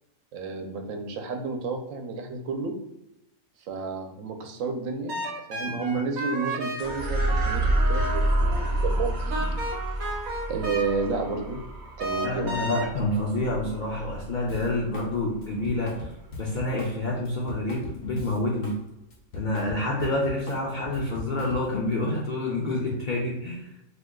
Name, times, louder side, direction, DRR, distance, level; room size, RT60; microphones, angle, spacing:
voice 1, 0.3-2.8 3.6-5.2 5.5-9.7 10.5-11.6 12.0-12.7, right 4 dB, 85° right, 5 dB, 1.0 m, -31 dB
sound 1, 5.1-8.7 9.3-11.3 12.0-12.9, right 1 dB, 60° right, 1.0 m, -33 dB
sound 2, 6.8-15.4, right 1 dB, 45° right, 0.6 m, -28 dB
voice 2, 12.2-16.1 16.4-18.8 19.3-23.7, left 2 dB, 60° left, -3 dB, 0.5 m, -28 dB
Drum kit, 14.5-15.1 15.4-18.8 19.1-21.8, left 2 dB, 90° left, 1.1 m, -39 dB
2.8 x 2.2 x 3.5 m, 0.86 s
omnidirectional pair, 1.3 m